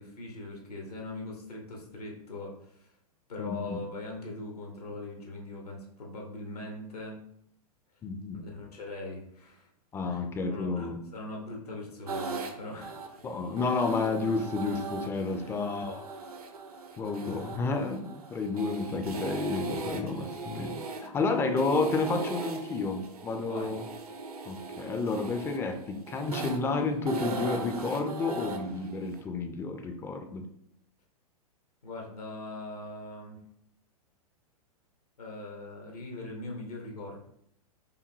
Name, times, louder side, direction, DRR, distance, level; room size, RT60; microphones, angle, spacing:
voice 1, 0.0-2.9 3.3-7.2 8.3-9.7 10.0-13.2 15.3-15.6 23.4-23.7 31.8-33.4 35.2-37.2, left 2 dB, 80° left, 0 dB, 1.0 m, -41 dB
voice 2, 3.4-3.8 8.0-8.4 9.9-11.0 13.2-16.1 17.0-20.8 21.0-23.8 24.4-30.4, left 3 dB, 15° left, 6 dB, 0.3 m, -31 dB
sound 1, 12.1-29.2, right 3 dB, 75° right, 0.6 m, -39 dB
4.8 x 2.6 x 2.6 m, 0.73 s
figure-of-eight pair, 100°, 20 cm